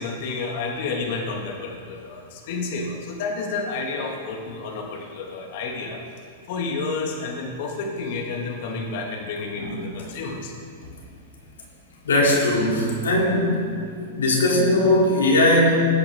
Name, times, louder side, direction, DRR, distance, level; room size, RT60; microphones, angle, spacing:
voice 1, 0.0-6.0 6.5-10.5, left 3 dB, 60° left, 1 dB, 2.0 m, -30 dB
voice 2, 12.0-13.7 14.0-15.7, left 1 dB, 85° left, -2 dB, 2.9 m, -19 dB
18.5 x 8.5 x 3.7 m, 2.2 s
hypercardioid pair, 115°, 0 cm